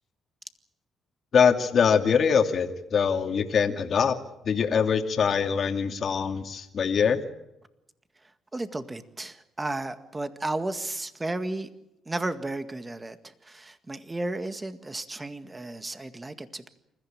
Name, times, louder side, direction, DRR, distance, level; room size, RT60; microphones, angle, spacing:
voice 1, 1.3-4.2 4.4-7.2, left 6 dB, 55° left, 6 dB, 2.5 m, -23 dB
voice 2, 8.5-11.7 12.1-16.7, right 2 dB, 20° right, 10 dB, 1.9 m, -33 dB
28.0 x 15.0 x 8.9 m, 0.86 s
cardioid pair, 90°, 0 cm